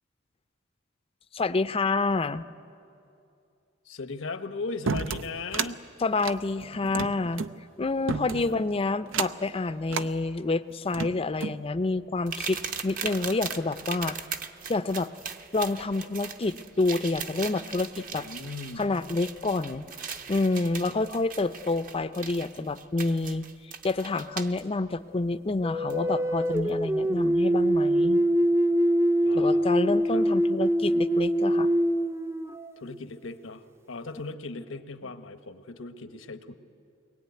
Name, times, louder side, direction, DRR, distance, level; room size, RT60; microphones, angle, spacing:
voice 1, 1.3-2.5 6.0-7.4 7.8-14.2 14.7-15.1 15.5-18.3 18.8-19.8 20.3-23.5 23.8-28.2 29.3-31.7, left 3 dB, 30° left, 13 dB, 0.5 m, -28 dB
voice 2, 3.8-5.8 8.1-8.6 18.1-18.9 20.9-21.0 29.2-29.7 30.1-30.3 32.8-36.5, left 3 dB, 85° left, 8 dB, 1.1 m, -38 dB
sound 1, 4.9-5.7 6.2-7.5 8.1-8.6 9.1-9.5 9.9-10.1 10.7-11.6, right 5 dB, 80° right, 0.7 m, -31 dB
sound 2, 12.3-24.6 25.9-26.0 26.6-26.7, right 6 dB, 45° right, 1.0 m, -39 dB
sound 3, 25.6-33.0, equal, 15° right, 0.6 m, -24 dB
23.0 x 20.5 x 9.3 m, 2.6 s
head